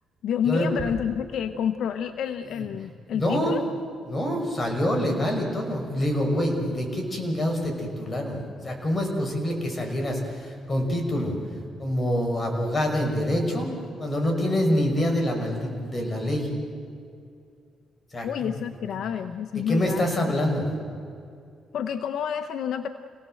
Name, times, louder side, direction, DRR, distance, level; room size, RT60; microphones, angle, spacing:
voice 1, 0.2-3.7 18.2-20.3 21.7-22.9, left 8 dB, 70° left, 9 dB, 0.9 m, -29 dB
voice 2, 3.1-3.6 4.1-11.4 11.8-13.7 14.0-16.5 18.1-18.5 19.7-20.7, equal, 30° left, 2 dB, 5.9 m, -26 dB
28.5 x 18.5 x 7.8 m, 2.4 s
cardioid pair, 90°, 0 cm